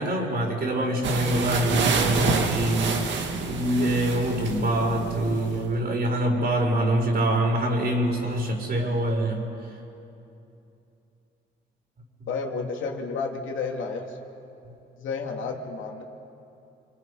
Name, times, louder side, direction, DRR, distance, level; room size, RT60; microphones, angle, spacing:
voice 1, 0.0-3.1 3.4-9.5 12.2-12.3, right 1 dB, 50° right, 1 dB, 4.9 m, -25 dB
sound 1, 1.0-5.7, right 4 dB, 70° right, 2.0 m, -27 dB
voice 2, 12.3-14.2 15.0-16.0, left 4 dB, 80° left, 1 dB, 2.6 m, -31 dB
28.0 x 24.5 x 5.0 m, 2.8 s
cardioid pair, 90°, 20 cm